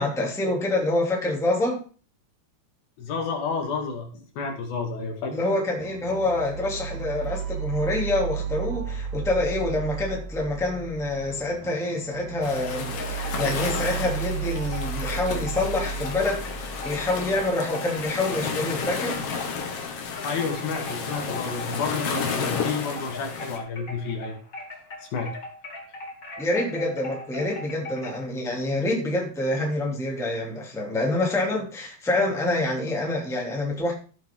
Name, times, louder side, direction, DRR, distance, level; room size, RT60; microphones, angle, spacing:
voice 1, 0.0-1.8 5.3-19.2 26.4-33.9, left 2 dB, ahead, 2.0 m, -26 dB
voice 2, 3.0-5.3 20.2-24.4 25.1-25.3, left 5 dB, 75° left, 3.8 m, -30 dB
sound 1, 5.8-17.5, right 7 dB, 80° right, 3.1 m, -34 dB
sound 2, 12.4-23.6, left 5 dB, 55° left, 2.0 m, -32 dB
sound 3, 12.7-19.8 20.1-28.2, left 2 dB, 25° left, 2.9 m, -41 dB
14.5 x 7.4 x 3.7 m
omnidirectional pair, 4.3 m